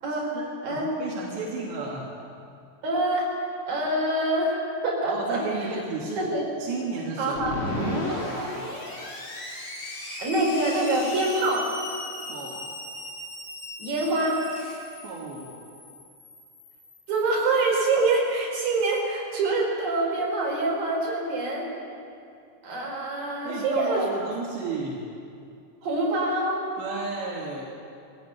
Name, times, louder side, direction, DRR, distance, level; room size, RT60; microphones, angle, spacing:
voice 1, 0.3-2.1 5.0-6.3 6.6-8.7 12.2-12.7 14.9-15.5 23.4-25.0 26.8-27.7, right 3 dB, 80° right, -4 dB, 5.0 m, -33 dB
voice 2, 2.8-3.3 3.7-5.4 6.1-6.4 7.2-7.5 10.2-11.7 13.8-14.4 17.1-21.7 22.6-24.2 25.8-26.6, right 2 dB, 55° right, -3 dB, 6.7 m, -25 dB
Screech, 7.3-17.8, left 1 dB, 30° left, 4.0 m, -36 dB
21.5 x 16.5 x 9.5 m, 2.5 s
omnidirectional pair, 4.9 m